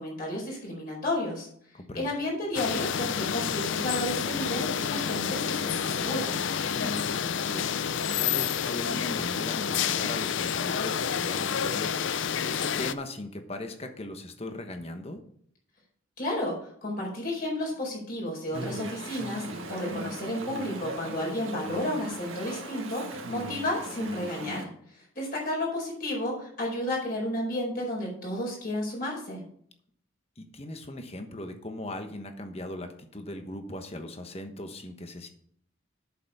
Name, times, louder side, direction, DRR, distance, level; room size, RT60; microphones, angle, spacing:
voice 1, 0.0-1.5 1.9-6.3 16.2-29.4, left 1 dB, 45° left, -2 dB, 4.6 m, -32 dB
voice 2, 1.7-2.1 6.7-7.7 8.0-15.2 30.4-35.3, left 1 dB, 30° left, 6 dB, 1.1 m, -39 dB
sound 1, 2.5-12.9, left 7 dB, 65° left, 0.5 m, -29 dB
Chatter / Stream, 18.5-24.7, right 2 dB, 80° right, 1.6 m, -38 dB
8.3 x 6.9 x 5.5 m, 0.63 s
head